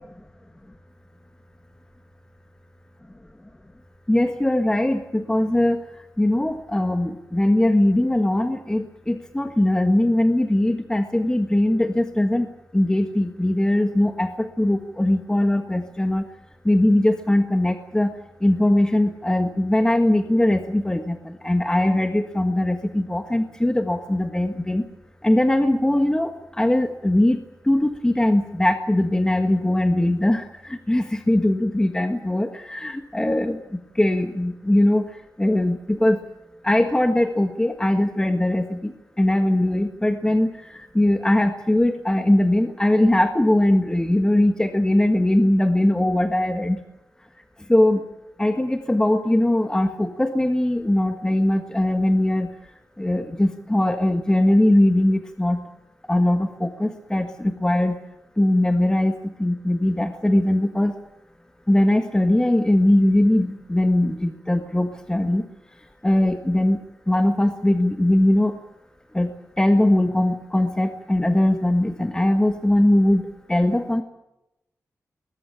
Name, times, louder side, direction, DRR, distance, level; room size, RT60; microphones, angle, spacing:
voice 1, 4.1-5.8 6.2-12.5 12.7-16.2 16.6-18.1 18.4-24.8 25.2-26.3 26.6-27.4 27.7-30.4 30.7-33.6 34.0-35.0 35.4-36.2 36.6-38.9 39.2-40.5 40.9-46.8 47.7-48.0 48.4-52.5 53.0-55.6 56.1-57.9 58.4-59.1 59.4-60.9 61.7-65.4 66.0-66.8 67.1-68.5 69.1-69.3 69.6-73.2 73.5-74.0, left 1 dB, 10° left, 6 dB, 1.5 m, -20 dB
21.5 x 20.5 x 9.0 m, 0.88 s
wide cardioid pair, 155°, 6 cm